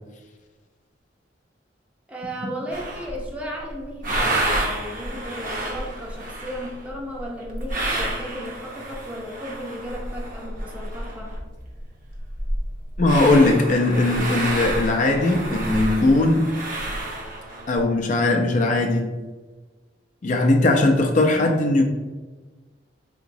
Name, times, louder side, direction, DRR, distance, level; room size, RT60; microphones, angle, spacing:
voice 1, 2.1-11.4, equal, 10° right, -2 dB, 0.5 m, -35 dB
sound 1, 2.7-3.3 3.7-11.5 11.7-11.8 12.1-17.8, right 1 dB, 45° right, 0.7 m, -29 dB
voice 2, 13.0-16.5 17.7-19.1 20.2-21.9, left 2 dB, 40° left, 2 dB, 0.4 m, -19 dB
3.8 x 2.9 x 2.6 m, 1.3 s
head